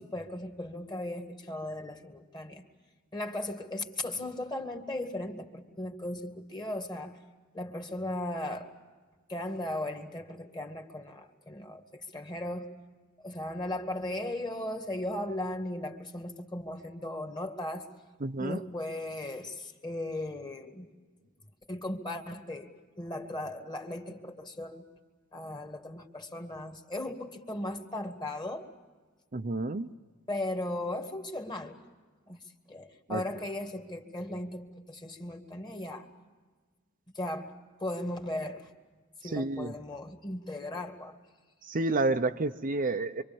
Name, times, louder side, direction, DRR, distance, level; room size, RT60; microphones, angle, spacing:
voice 1, 0.0-2.7 3.1-7.2 7.5-8.7 9.3-12.7 13.2-17.9 18.4-20.9 21.7-22.7 23.0-24.8 25.3-28.7 30.3-31.8 32.3-32.4 32.7-36.1 37.1-37.5 37.8-38.7 39.2-41.2, left 1 dB, 20° left, 5 dB, 2.1 m, -37 dB
voice 2, 18.2-18.6 29.3-29.9 33.1-33.2 39.3-39.7 41.7-43.2, right 2 dB, 40° right, 7 dB, 0.7 m, -30 dB
26.0 x 25.5 x 7.1 m, 1.4 s
head